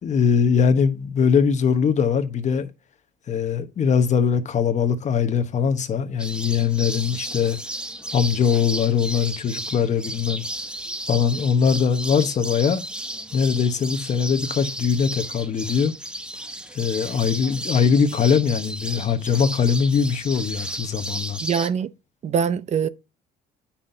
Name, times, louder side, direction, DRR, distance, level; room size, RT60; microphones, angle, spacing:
voice 1, 0.0-2.7 3.3-7.6 8.1-10.4 11.1-12.8 13.3-15.9 16.7-21.4, left 6 dB, 45° left, 1.0 m, -21 dB
sound 1, 6.2-21.7, right 1 dB, 5° right, 0.8 m, -33 dB
voice 2, 21.4-21.9 22.2-22.9, right 7 dB, 40° right, 0.5 m, -23 dB
8.6 x 5.7 x 2.7 m
cardioid pair, 110°, 17 cm